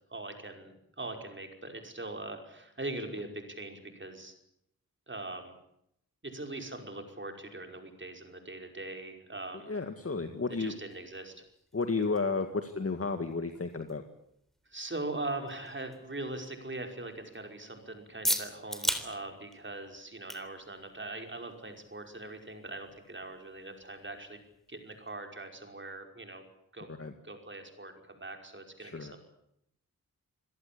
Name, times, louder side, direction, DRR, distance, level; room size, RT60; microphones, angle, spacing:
voice 1, 0.1-4.3 5.1-5.6 6.2-9.7 10.6-11.4 14.7-24.4 24.7-26.4 26.7-26.9 27.2-29.2, right 2 dB, 30° right, 4 dB, 5.3 m, -41 dB
voice 2, 9.7-10.7 11.7-14.0 26.9-27.1 28.8-29.1, left 4 dB, 40° left, 7 dB, 2.0 m, -32 dB
sound 1, 9.9-25.2, equal, ahead, 3.5 m, -42 dB
27.0 x 17.5 x 8.6 m, 0.75 s
wide cardioid pair, 95°, 36 cm